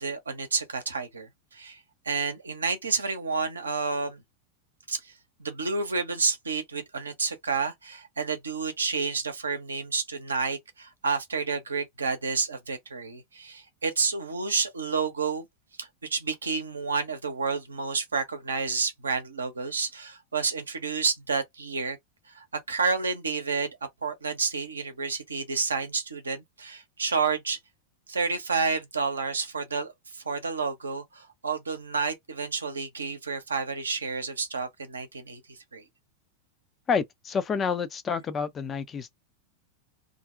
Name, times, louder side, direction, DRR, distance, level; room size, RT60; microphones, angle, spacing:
voice 1, 0.0-1.8 2.0-4.2 4.9-5.1 5.4-15.5 15.8-22.0 22.3-23.7 24.0-27.6 28.1-35.8, right 4 dB, 75° right, 0.6 m, -30 dB
voice 2, 36.9-39.1, left 6 dB, 25° left, 0.4 m, -28 dB
2.5 x 2.1 x 2.4 m
figure-of-eight pair, 90°, 0 cm